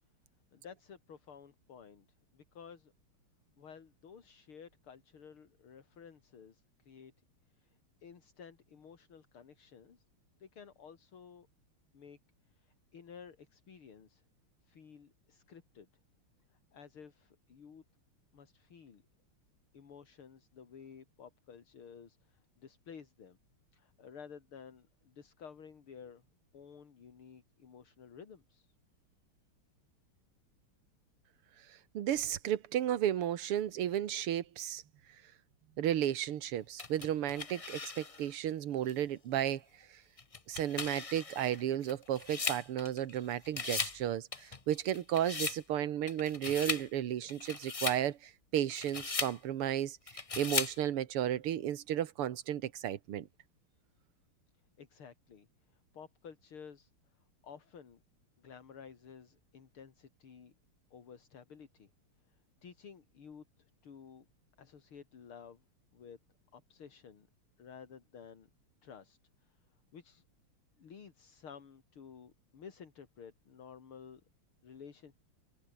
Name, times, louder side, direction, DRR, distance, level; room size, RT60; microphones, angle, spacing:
voice 1, 0.5-2.1 2.3-2.9 3.6-7.1 7.5-10.0 10.4-11.5 11.9-12.2 12.5-14.2 14.6-15.9 16.5-17.8 18.3-19.0 19.7-23.4 23.7-26.2 26.5-28.7 54.8-58.0 58.4-60.5 60.9-61.9 62.3-64.3 64.6-65.6 65.9-66.2 66.5-67.3 67.6-68.5 68.8-70.2 70.8-74.2 74.6-75.1, left 6 dB, 75° left, 3.3 m, -53 dB
voice 2, 31.9-34.8 35.8-39.6 40.5-50.0 50.4-53.3, right 11 dB, 85° right, 2.1 m, -33 dB
sound 1, 36.8-38.3 38.9-39.0 40.2-43.2 43.4-44.0 44.3-45.6 46.1-46.9 47.3-48.0 48.6-49.4 50.1-50.8, left 4 dB, 40° left, 0.5 m, -38 dB
omnidirectional pair, 2.4 m